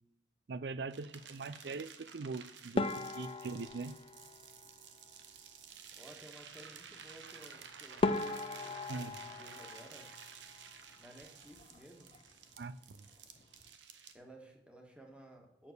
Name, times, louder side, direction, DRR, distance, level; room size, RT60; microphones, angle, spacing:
voice 1, 0.5-4.0 8.9-9.2 12.6-13.1, right 4 dB, 70° right, 16 dB, 0.4 m, -42 dB
sound 1, 0.9-14.1, right 7 dB, 85° right, 1.0 m, -53 dB
sound 2, 2.8-5.2 7.5-7.6 8.0-10.8 11.0-11.8 12.1-12.3 12.6-12.7 13.4-13.7, left 3 dB, 30° left, 0.4 m, -38 dB
voice 2, 6.0-8.3 8.6-10.1 11.0-12.1 14.1-15.7, right 1 dB, 5° right, 1 dB, 1.6 m, -56 dB
8.9 x 6.6 x 6.7 m, 0.77 s
head